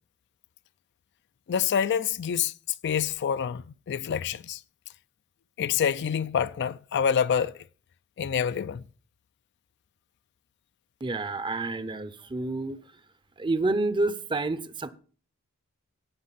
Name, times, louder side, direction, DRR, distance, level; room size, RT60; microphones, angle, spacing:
voice 1, 1.5-2.5 2.8-4.6 5.6-7.6 8.2-8.8, left 7 dB, 50° left, 0.4 m, -27 dB
voice 2, 11.0-12.8 13.4-14.9, right 2 dB, 20° right, 0.6 m, -29 dB
17.0 x 6.2 x 4.0 m
head